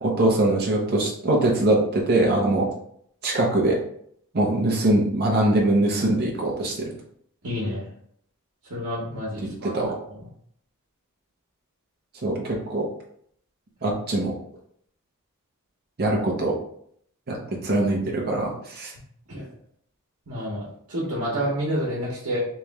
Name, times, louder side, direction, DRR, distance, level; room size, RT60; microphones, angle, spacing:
voice 1, 0.0-2.7 3.2-3.8 4.3-6.9 9.4-10.0 12.2-12.9 13.8-14.3 16.0-16.6 17.3-18.9, right 1 dB, 45° right, -2 dB, 0.7 m, -22 dB
voice 2, 7.4-7.9 8.7-9.7 10.1-10.2 19.3-19.5 20.3-22.5, equal, 80° right, -4 dB, 1.1 m, -29 dB
3.1 x 3.0 x 3.5 m, 0.66 s
head